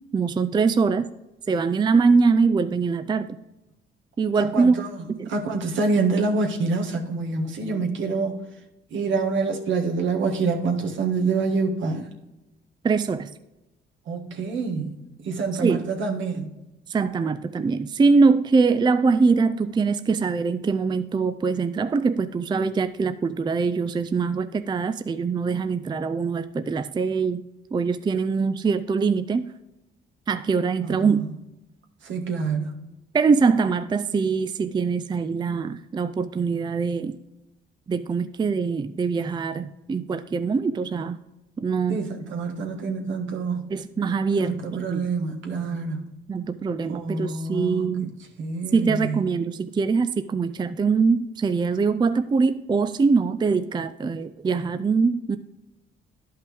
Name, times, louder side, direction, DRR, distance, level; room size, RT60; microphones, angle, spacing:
voice 1, 0.1-1.0 1.5-3.4 4.2-4.8 5.1-5.3 12.8-13.3 15.6-15.8 16.9-27.4 27.7-29.5 30.3-31.2 33.1-37.2 37.9-41.2 41.6-42.0 43.7-45.1 46.3-48.1 48.7-55.4, right 4 dB, 20° right, 11 dB, 0.4 m, -23 dB
voice 2, 4.4-5.0 5.3-8.4 8.9-12.1 14.1-16.5 30.8-31.3 32.0-32.7 41.9-43.7 44.4-46.1 46.9-48.1 48.4-49.2, right 4 dB, 75° right, 2 dB, 1.6 m, -26 dB
11.5 x 5.5 x 3.4 m, 0.97 s
cardioid pair, 90°, 20 cm